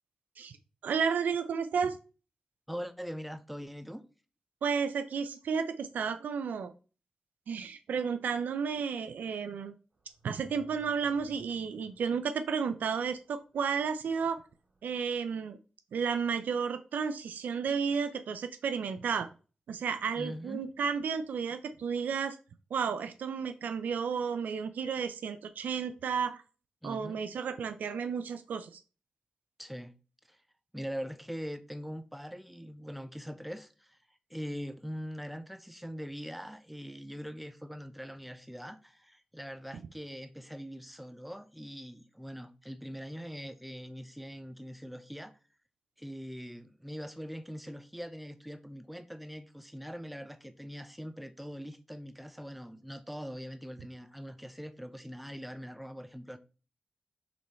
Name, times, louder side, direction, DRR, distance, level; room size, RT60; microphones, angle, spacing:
voice 1, 0.8-2.0 4.6-6.7 7.5-9.7 10.2-14.4 14.8-15.6 15.9-19.3 19.7-22.4 22.7-26.4 26.8-28.7, right 6 dB, 85° right, 0.5 m, -32 dB
voice 2, 2.7-4.0 20.2-20.6 26.8-27.2 29.6-29.9 30.3-30.4 30.7-34.0 34.3-45.3 46.0-56.4, equal, ahead, 0.8 m, -42 dB
sound 1, 10.1-12.1 14.7-14.9, left 1 dB, 60° right, 3.3 m, -57 dB
7.0 x 3.1 x 4.3 m
cardioid pair, 40°, 3 cm